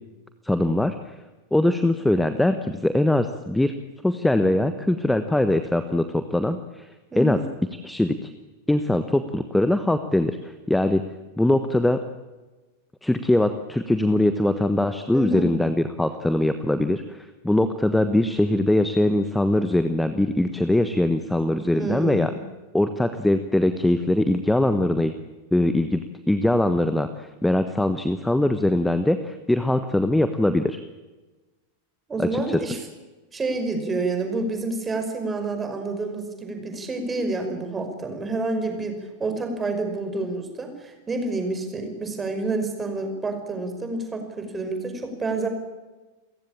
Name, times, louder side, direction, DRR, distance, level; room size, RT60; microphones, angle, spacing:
voice 1, 0.4-1.1 1.5-3.7 4.0-6.9 7.2-7.4 7.8-8.3 8.7-11.0 11.4-12.0 13.0-22.3 22.7-25.1 25.5-30.8 32.2-32.6, left 1 dB, 5° left, 10 dB, 1.3 m, -22 dB
voice 2, 7.1-7.5 15.1-15.5 21.7-22.4 32.1-32.8 33.3-45.5, right 3 dB, 15° right, 5 dB, 5.5 m, -28 dB
29.5 x 16.0 x 8.8 m, 1.2 s
figure-of-eight pair, 90°, 0 cm